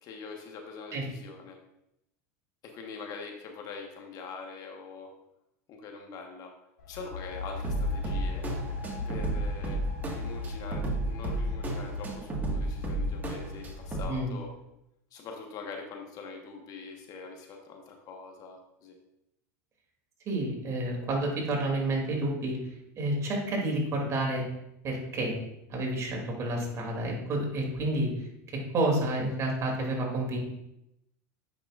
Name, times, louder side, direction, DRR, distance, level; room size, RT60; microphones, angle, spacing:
voice 1, 0.0-1.6 2.6-5.1 5.7-6.5 6.9-8.5 9.1-9.8 10.1-14.5 15.1-19.0, left 5 dB, 45° left, 2 dB, 1.3 m, -43 dB
sound 1, 6.8-14.5, left 3 dB, 85° left, 1.8 m, -39 dB
sound 2, 7.6-14.0, right 1 dB, 20° right, 1.6 m, -33 dB
voice 2, 20.3-22.6 22.9-24.4 24.8-25.3 25.7-28.3 28.7-30.4, right 1 dB, 35° right, 0 dB, 2.6 m, -29 dB
8.5 x 5.8 x 2.5 m, 0.84 s
hypercardioid pair, 100°, 9 cm